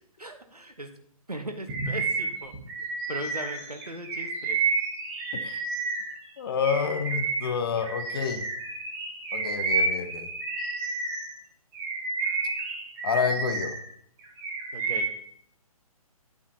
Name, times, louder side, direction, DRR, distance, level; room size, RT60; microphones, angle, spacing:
voice 1, 0.2-0.9 1.3-2.5 3.1-4.6 14.7-15.1, right 1 dB, 85° right, 6 dB, 1.2 m, -38 dB
Bird vocalization bird call bird song, 1.7-6.2 6.6-11.3 11.7-13.8 14.2-15.2, right 3 dB, 25° right, 1.6 m, -30 dB
voice 2, 5.3-5.7 6.4-8.5 9.3-10.3 13.0-13.7, left 6 dB, 40° left, 8 dB, 0.9 m, -29 dB
10.0 x 8.9 x 2.8 m, 0.66 s
figure-of-eight pair, 135°, 19 cm